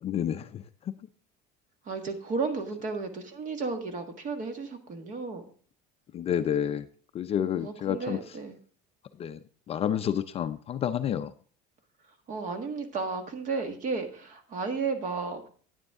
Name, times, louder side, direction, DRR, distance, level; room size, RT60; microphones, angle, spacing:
voice 1, 0.0-0.6 6.1-6.9 7.1-8.2 9.2-9.4 9.7-11.3, left 9 dB, 30° left, 9 dB, 0.5 m, -29 dB
voice 2, 1.8-5.4 7.6-8.6 12.3-15.5, right 4 dB, 40° right, 6 dB, 1.7 m, -33 dB
9.9 x 9.4 x 3.6 m, 0.44 s
cardioid pair, 145°, 20 cm